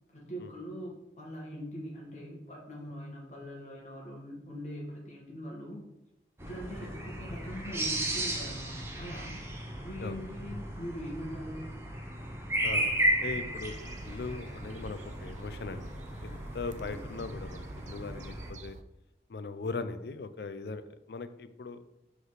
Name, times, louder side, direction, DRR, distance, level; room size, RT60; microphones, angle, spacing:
voice 1, 0.1-5.8 6.4-9.4 9.8-11.7 16.8-17.0, equal, 40° left, -2 dB, 1.5 m, -42 dB
sound 1, 6.4-18.5, right 1 dB, 15° right, 0.7 m, -35 dB
voice 2, 12.6-12.9 13.2-13.8 14.0-15.9 16.2-18.8 19.3-21.8, left 4 dB, 65° left, 12 dB, 0.4 m, -39 dB
sound 2, 13.6-18.8, right 3 dB, 40° right, 0.3 m, -48 dB
5.4 x 3.9 x 4.7 m, 0.88 s
head